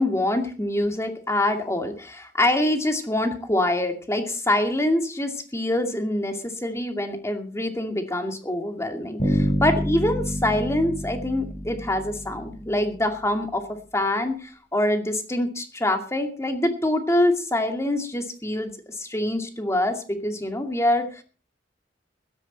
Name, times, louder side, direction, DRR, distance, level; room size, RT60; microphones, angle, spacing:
voice 1, 0.0-13.6 13.9-21.2, left 1 dB, 15° left, 5 dB, 2.4 m, -25 dB
Bass guitar, 9.2-13.0, equal, 45° left, 4.6 m, -27 dB
16.5 x 13.0 x 4.3 m, 0.36 s
head